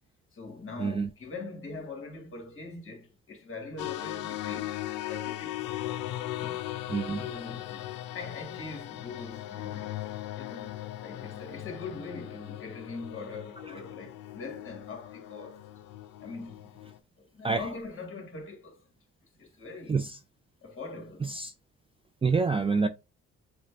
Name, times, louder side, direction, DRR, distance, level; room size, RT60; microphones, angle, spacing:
voice 1, 0.3-4.8 5.1-5.9 6.3-6.9 7.1-10.0 10.4-10.7 11.0-15.7 16.2-16.7 17.2-18.9 19.4-20.0 20.6-21.4, left 3 dB, 45° left, 1.8 m, -42 dB
sound 1, 3.8-17.0, left 14 dB, 90° left, 0.5 m, -38 dB
voice 2, 6.9-7.2 17.4-17.7 19.9-20.2 21.2-21.5 22.2-22.9, right 4 dB, 20° right, 0.4 m, -27 dB
6.5 x 2.2 x 3.3 m
cardioid pair, 90°, 30 cm